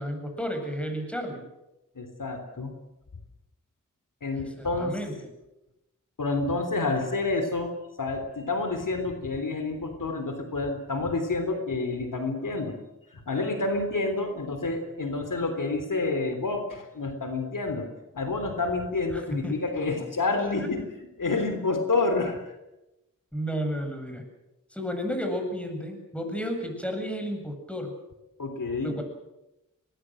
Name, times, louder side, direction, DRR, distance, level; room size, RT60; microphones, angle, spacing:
voice 1, 0.0-1.5 4.4-5.3 19.1-19.6 20.6-20.7 23.3-24.2 24.7-27.9 28.8-29.0, equal, 5° left, 4 dB, 7.8 m, -32 dB
voice 2, 1.9-2.7 4.2-4.9 6.2-7.7 8.0-12.8 13.1-17.9 18.1-20.8 21.2-22.4 28.4-29.0, left 3 dB, 75° left, 7 dB, 3.5 m, -28 dB
23.5 x 20.0 x 7.9 m, 0.96 s
cardioid pair, 50°, 32 cm